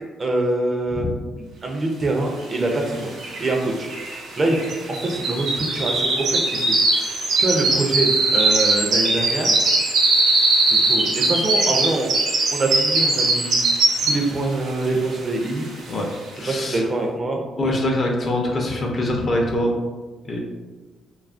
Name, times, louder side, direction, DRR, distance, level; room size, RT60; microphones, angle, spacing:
voice 1, 0.2-1.1 1.4-3.1 3.4-3.9 4.4-4.6 4.9-6.7 7.4-9.5 10.8-12.1 12.5-13.5 14.0-15.7 16.5-17.4, right 2 dB, 35° right, 1 dB, 0.4 m, -24 dB
sound 1, 2.7-2.8 3.0-14.4 14.8-15.2 15.6-15.7, right 2 dB, 80° right, 0.7 m, -20 dB
voice 2, 16.3-16.8 17.6-19.7 20.2-20.4, left 1 dB, 40° left, 0 dB, 0.6 m, -23 dB
2.8 x 2.3 x 2.4 m, 1.3 s
cardioid pair, 90°, 0 cm